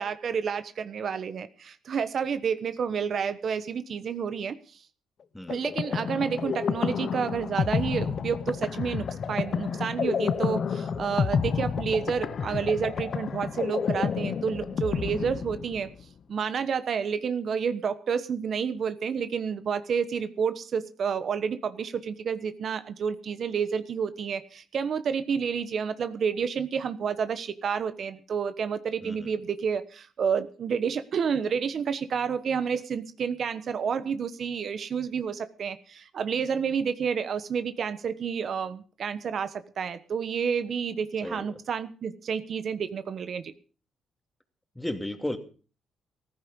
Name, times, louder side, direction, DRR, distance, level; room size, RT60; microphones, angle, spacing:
voice 1, 0.0-4.8 5.5-15.9 16.3-43.5, right 6 dB, 55° right, 11 dB, 1.2 m, -30 dB
sound 1, 5.5-16.0, left 6 dB, 50° left, 0.9 m, -30 dB
voice 2, 29.0-29.4 41.2-41.6 44.7-45.4, left 1 dB, 5° left, 6 dB, 2.6 m, -34 dB
14.5 x 14.5 x 5.4 m, 0.38 s
cardioid pair, 90°, 0 cm